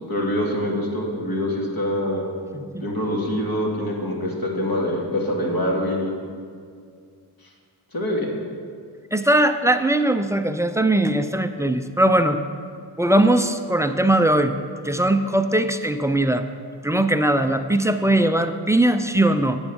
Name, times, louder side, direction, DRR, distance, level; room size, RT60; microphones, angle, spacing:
voice 1, 0.1-2.3 2.8-6.1 7.9-8.3, left 1 dB, 45° left, -1 dB, 2.3 m, -24 dB
voice 2, 2.5-2.9 9.1-12.4 13.0-14.6 14.8-16.5 16.8-19.6, right 1 dB, 5° right, 8 dB, 0.5 m, -20 dB
9.1 x 7.2 x 5.2 m, 2.2 s
supercardioid pair, 50°, 49 cm